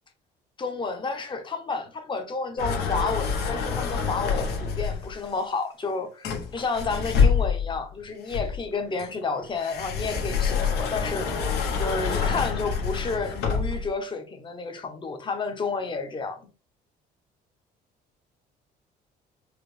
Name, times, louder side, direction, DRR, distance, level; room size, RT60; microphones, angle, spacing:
voice 1, 0.6-11.3 11.8-16.4, left 4 dB, 30° left, 1.0 m, -31 dB
sound 1, 2.6-5.1 6.2-7.8 8.3-13.9, left 6 dB, 80° left, 1.2 m, -26 dB
4.9 x 2.3 x 3.3 m
cardioid pair, 110°, 17 cm